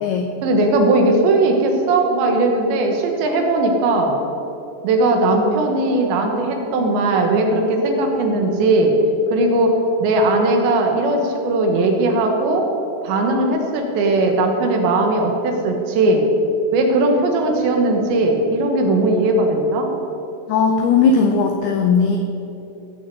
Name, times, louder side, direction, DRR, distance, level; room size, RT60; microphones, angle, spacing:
voice 1, 0.4-4.2 4.8-9.0 9.3-9.8 10.0-12.7 13.0-16.3 16.7-19.9, right 2 dB, 75° right, 3 dB, 3.3 m, -18 dB
voice 2, 20.5-22.2, left 5 dB, 85° left, 4 dB, 2.2 m, -17 dB
15.5 x 6.6 x 8.2 m, 2.9 s
omnidirectional pair, 5.7 m